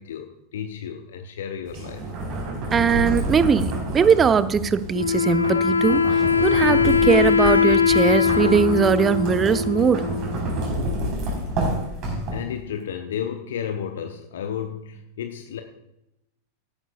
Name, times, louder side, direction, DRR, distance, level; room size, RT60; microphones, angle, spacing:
voice 1, 0.0-2.1 12.3-15.6, left 8 dB, 60° left, 6 dB, 0.9 m, -32 dB
sound 1, 1.7-12.6, right 1 dB, 40° right, 4.6 m, -29 dB
voice 2, 2.7-10.1, right 6 dB, 20° right, 14 dB, 0.6 m, -20 dB
Wind instrument woodwind instrument, 4.9-10.4, left 6 dB, 75° left, 0.5 m, -21 dB
14.0 x 12.0 x 2.5 m, 0.86 s
figure-of-eight pair, 90°, 0 cm